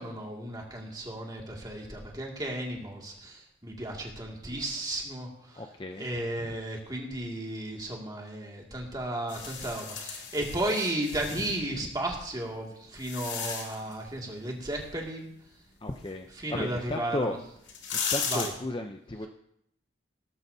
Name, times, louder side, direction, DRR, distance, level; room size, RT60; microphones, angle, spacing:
voice 1, 0.0-5.6 5.9-15.3 16.4-17.4 18.3-18.5, right 1 dB, 20° right, -1 dB, 2.3 m, -34 dB
voice 2, 5.5-6.1 6.4-6.5 11.8-11.9 15.8-17.4 18.1-19.3, left 1 dB, 25° left, 5 dB, 0.6 m, -34 dB
sound 1, 9.3-11.6 12.3-13.9 16.9-17.0 17.6-18.5, left 6 dB, 65° left, 2.5 m, -35 dB
18.0 x 13.5 x 2.8 m, 0.74 s
head